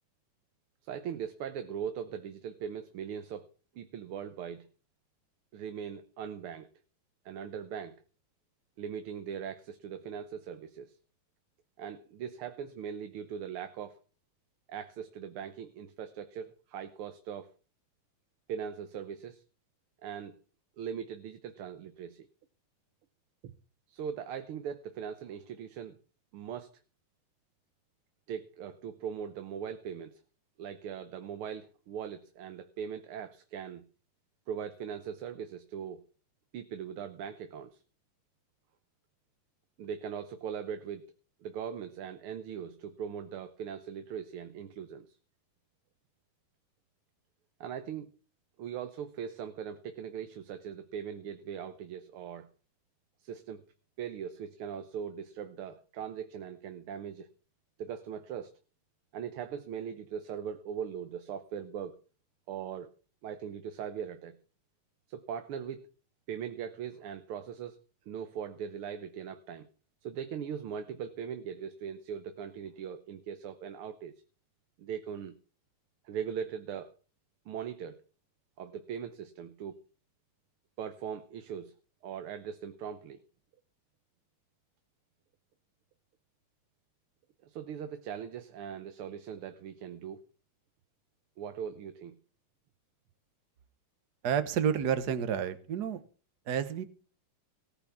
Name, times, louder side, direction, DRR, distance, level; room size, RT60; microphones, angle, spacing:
voice 1, 0.8-3.5 3.8-4.7 5.5-6.7 7.3-8.0 8.8-11.0 11.8-14.0 14.7-17.5 18.5-19.4 20.0-20.4 20.8-22.3 23.4-23.5 23.9-26.0 26.3-26.7 28.3-30.2 30.6-33.9 34.5-36.0 36.5-37.8 39.8-41.1 41.4-45.2 47.6-48.1 48.6-52.5 53.2-53.6 54.0-57.3 57.8-58.5 59.1-62.0 62.5-62.9 63.2-64.4 65.1-65.9 66.3-67.8 68.1-69.7 70.0-74.1 74.8-75.4 76.1-76.9 77.5-78.0 78.6-79.8 80.8-81.7 82.0-83.2 87.4-90.2 91.4-92.2, right 8 dB, 80° right, 1.8 m, -40 dB
voice 2, 94.2-96.0 96.5-96.8, right 8 dB, 55° right, 1.6 m, -30 dB
18.0 x 6.2 x 7.1 m
omnidirectional pair, 2.4 m